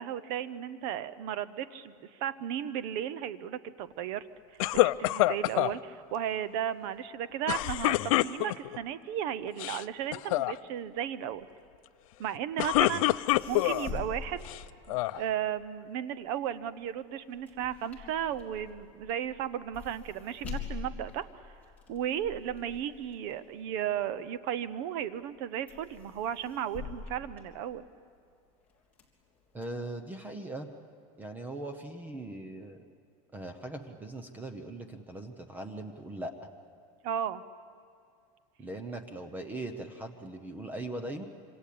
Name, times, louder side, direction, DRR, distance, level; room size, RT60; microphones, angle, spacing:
voice 1, 0.0-1.9 2.2-4.3 4.8-11.5 12.2-13.1 13.5-14.5 14.9-21.3 21.9-27.8 37.0-37.4, right 10 dB, 50° right, 15 dB, 0.9 m, -35 dB
sound 1, 4.6-5.7 7.5-8.8 9.5-9.8 10.1-10.5 12.3-13.9 14.5-15.2, left 17 dB, 80° left, 0.6 m, -26 dB
sound 2, 13.0-13.1 13.3-15.4 15.8-24.5 25.0-25.4 25.7-28.2 28.6-29.6, left 6 dB, 10° left, 3.3 m, -45 dB
voice 2, 29.5-30.7 31.2-32.9 33.3-36.5 38.6-41.3, right 2 dB, 10° right, 7 dB, 0.8 m, -40 dB
26.5 x 26.0 x 8.6 m, 2.3 s
supercardioid pair, 175°, 17 cm